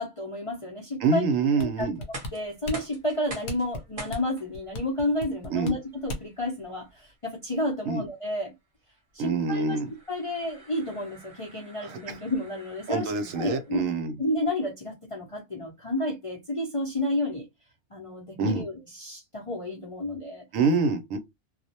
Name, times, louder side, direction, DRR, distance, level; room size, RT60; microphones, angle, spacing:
voice 1, 0.0-1.2 1.6-1.9 2.3-8.5 9.1-9.8 10.1-13.1 13.4-13.8 14.2-17.5 17.9-20.4, left 1 dB, 40° left, 0.4 m, -31 dB
voice 2, 1.0-2.0 5.5-5.8 7.9-8.0 9.2-9.9 11.8-12.2 12.9-14.1 18.4-18.6 20.5-21.2, right 4 dB, 75° right, 1.0 m, -26 dB
sound 1, 1.6-6.4 6.9-7.0, left 1 dB, 60° left, 0.9 m, -37 dB
sound 2, 1.9-13.8, right 1 dB, 35° right, 0.6 m, -47 dB
2.4 x 2.0 x 2.7 m
omnidirectional pair, 1.4 m